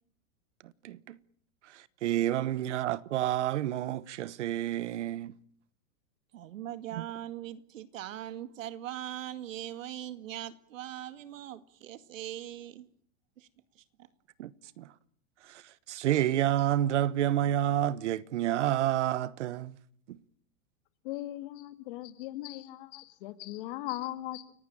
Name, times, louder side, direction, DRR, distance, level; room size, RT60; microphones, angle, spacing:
voice 1, 0.6-1.2 1.6-5.3 7.0-7.1 14.4-14.9 15.4-19.8 20.1-20.2, right 12 dB, 65° right, 1.2 m, -29 dB
voice 2, 6.3-12.9 13.4-13.5 13.7-14.1, right 12 dB, 85° right, 2.2 m, -41 dB
voice 3, 21.0-24.5, left 16 dB, 45° left, 2.2 m, -39 dB
30.0 x 17.0 x 8.9 m
supercardioid pair, 170°, 38 cm